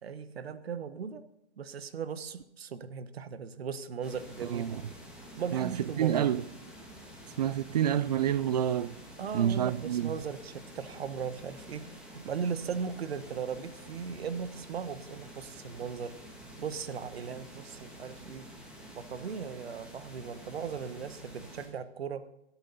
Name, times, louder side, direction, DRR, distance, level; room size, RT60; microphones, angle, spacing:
voice 1, 0.0-1.2 1.6-4.7 5.4-6.3 9.2-18.5 18.9-22.3, right 6 dB, 70° right, 1.3 m, -38 dB
sound 1, 4.0-21.7, equal, 5° right, 2.5 m, -49 dB
voice 2, 4.4-4.8 5.5-6.4 7.4-8.9 9.3-10.2, right 10 dB, 40° right, 0.6 m, -28 dB
16.5 x 13.0 x 4.1 m
hypercardioid pair, 155°, 33 cm